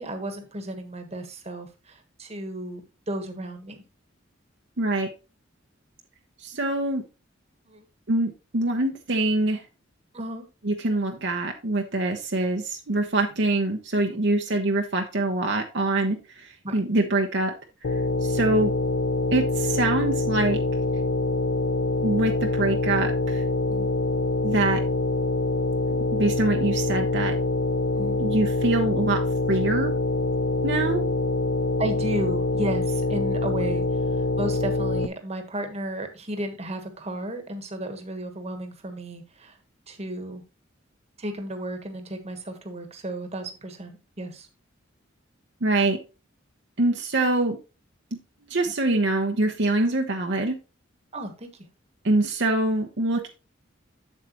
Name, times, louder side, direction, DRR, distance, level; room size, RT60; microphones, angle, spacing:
voice 1, 0.0-2.8 3.1-3.8 7.7-7.8 10.1-10.5 16.6-16.8 23.7-23.9 27.9-28.2 31.8-33.8 34.2-39.6 39.9-40.4 41.2-44.5 49.8-50.0 51.1-51.5, right 1 dB, 35° right, 6 dB, 1.4 m, -33 dB
voice 2, 4.8-5.1 6.4-7.0 8.1-9.6 10.6-17.5 18.2-18.7 19.3-20.6 22.0-23.4 24.4-24.8 26.1-27.3 28.2-29.2 29.5-29.9 30.6-31.1 45.6-46.0 46.8-47.6 48.5-50.6 52.0-53.3, right 2 dB, 60° right, 3 dB, 1.0 m, -24 dB
sound 1, 17.8-35.1, left 2 dB, 65° left, 0.5 m, -25 dB
8.0 x 7.5 x 3.0 m, 0.29 s
head